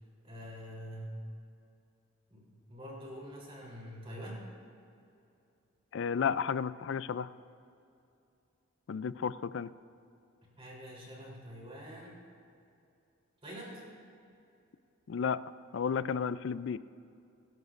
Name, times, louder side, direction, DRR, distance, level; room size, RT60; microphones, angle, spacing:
voice 1, 0.2-1.2 2.3-4.5 10.6-12.2 13.4-13.8, equal, 25° right, -4 dB, 3.4 m, -45 dB
voice 2, 5.9-7.3 8.9-9.7 15.1-15.4 15.7-16.8, left 6 dB, 60° left, 16 dB, 0.3 m, -32 dB
25.0 x 12.0 x 2.5 m, 2.6 s
head